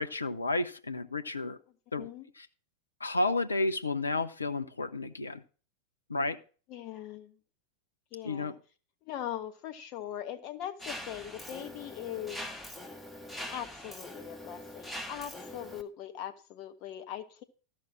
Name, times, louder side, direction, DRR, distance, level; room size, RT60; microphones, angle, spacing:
voice 1, 0.0-1.6 1.9-2.5 3.0-5.4 6.1-6.4 8.2-8.6, left 2 dB, 80° left, 10 dB, 0.6 m, -32 dB
voice 2, 6.7-7.3 8.1-8.6 9.0-12.4 13.5-17.4, left 11 dB, 40° left, 9 dB, 1.2 m, -41 dB
Mechanisms, 10.8-15.8, left 1 dB, 5° left, 1.4 m, -43 dB
13.5 x 6.0 x 6.2 m, 0.39 s
figure-of-eight pair, 90°, 0 cm